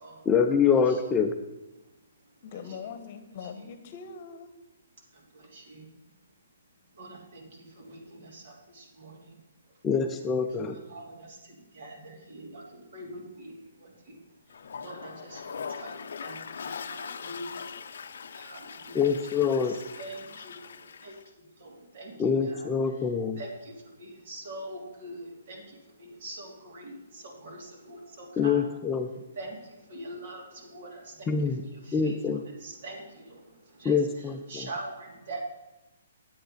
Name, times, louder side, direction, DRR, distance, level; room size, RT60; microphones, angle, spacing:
voice 1, 0.3-1.3 9.8-10.8 18.9-19.7 22.2-23.4 28.4-29.1 31.3-31.6 31.9-32.4 33.8-34.7, left 6 dB, 15° left, 5 dB, 0.5 m, -25 dB
voice 2, 2.4-4.5, left 6 dB, 45° left, 9 dB, 1.0 m, -41 dB
Toilet flush, 14.5-21.3, left 6 dB, 70° left, 0.5 m, -41 dB
voice 3, 14.8-15.4 16.2-16.3 17.3-17.4 18.5-18.6 20.0-20.2 22.0-22.1 23.4-23.5 24.3-25.2 25.5-25.6 26.2-26.8 27.4-27.6 28.4-28.6 29.4-29.5 29.9-30.4 30.7-30.9 32.0-32.1 32.6-33.0 33.8-33.9 34.5-34.9 35.3-35.4, right 2 dB, 60° right, 0 dB, 2.8 m, -40 dB
8.7 x 7.9 x 5.1 m, 1.0 s
hypercardioid pair, 145°, 0 cm